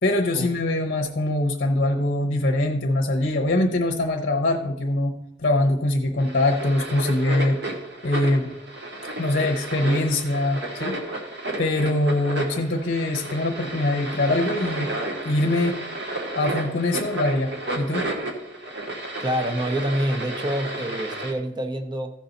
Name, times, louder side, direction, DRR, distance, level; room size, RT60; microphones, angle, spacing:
voice 1, 0.0-7.6 8.0-8.5 9.2-11.0 11.6-14.9 15.2-15.8 16.3-18.1, left 1 dB, 55° left, 4 dB, 0.8 m, -23 dB
sound 1, 6.2-21.3, right 1 dB, 60° right, 1.6 m, -32 dB
voice 2, 19.2-22.1, right 1 dB, 25° right, 6 dB, 0.8 m, -26 dB
14.5 x 5.6 x 3.9 m, 0.84 s
head